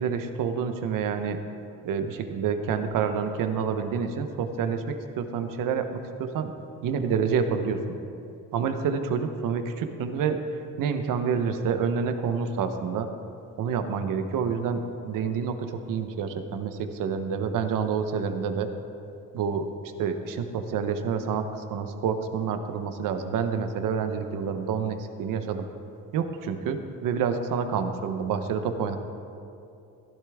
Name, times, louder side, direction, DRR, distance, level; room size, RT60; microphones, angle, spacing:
voice 1, 0.0-1.4 1.8-5.9 6.2-6.5 6.8-8.0 8.5-10.4 10.8-13.1 13.6-18.7 19.3-19.7 20.0-25.6 26.1-29.0, right 6 dB, 65° right, 8 dB, 0.9 m, -28 dB
15.0 x 12.0 x 3.5 m, 2.6 s
cardioid pair, 175°, 34 cm